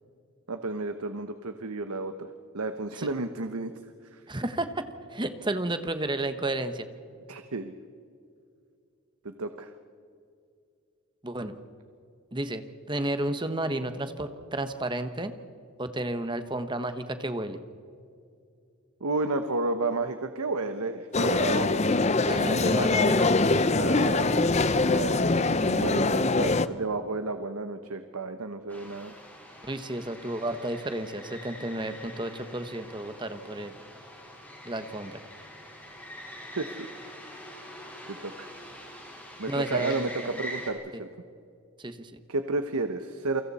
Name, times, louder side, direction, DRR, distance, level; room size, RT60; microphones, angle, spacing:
voice 1, 0.5-2.3 2.5-3.7 4.1-4.2 7.3-7.7 9.2-9.7 19.0-21.8 23.8-29.1 36.6-36.9 38.1-38.5 39.4-41.1 42.3-43.4, right 3 dB, 85° right, 9 dB, 1.0 m, -32 dB
voice 2, 4.3-4.9 5.1-6.9 11.2-11.5 12.3-12.6 12.9-15.4 15.8-17.6 22.2-23.3 29.6-33.7 34.6-35.2 39.5-40.2 41.8-42.1, right 1 dB, 20° right, 9 dB, 1.1 m, -32 dB
sound 1, 21.1-26.7, left 3 dB, 30° left, 0.6 m, -23 dB
sound 2, 28.7-40.7, equal, 10° left, 4.2 m, -44 dB
29.0 x 24.0 x 4.2 m, 2.4 s
head